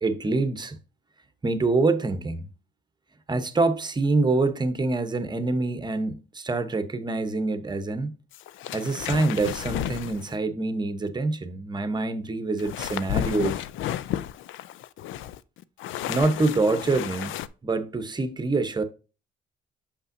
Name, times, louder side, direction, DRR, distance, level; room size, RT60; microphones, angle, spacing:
voice 1, 0.0-0.8 1.4-2.5 3.3-8.1 8.7-13.6 16.1-17.4 17.6-18.8, right 3 dB, 20° right, 0.9 m, -25 dB
sound 1, 8.3-10.4 12.6-17.5, left 11 dB, 80° left, 0.4 m, -32 dB
6.7 x 5.5 x 2.6 m
cardioid pair, 90°, 20 cm